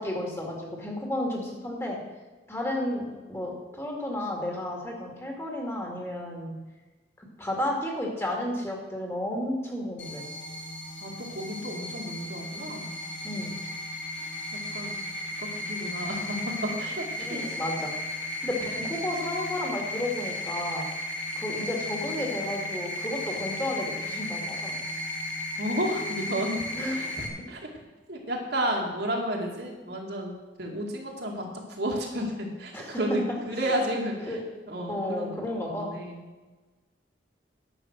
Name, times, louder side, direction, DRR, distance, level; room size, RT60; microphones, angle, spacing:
voice 1, 0.0-2.0 2.5-6.6 7.2-10.2 13.2-13.6 17.3-17.9 18.4-20.9 21.4-24.8 26.7-27.0 32.7-33.0 33.6-33.7 34.3-34.4 34.9-35.9, left 1 dB, 15° left, 0 dB, 2.0 m, -32 dB
sound 1, 10.0-27.3, left 1 dB, 75° left, 1.7 m, -35 dB
voice 2, 11.0-13.0 14.1-15.0 15.4-17.4 25.6-26.6 26.9-27.7 28.1-33.2 33.5-34.4 34.7-35.4 35.7-36.2, equal, 60° right, -1 dB, 2.3 m, -32 dB
11.0 x 7.5 x 6.4 m, 1.3 s
head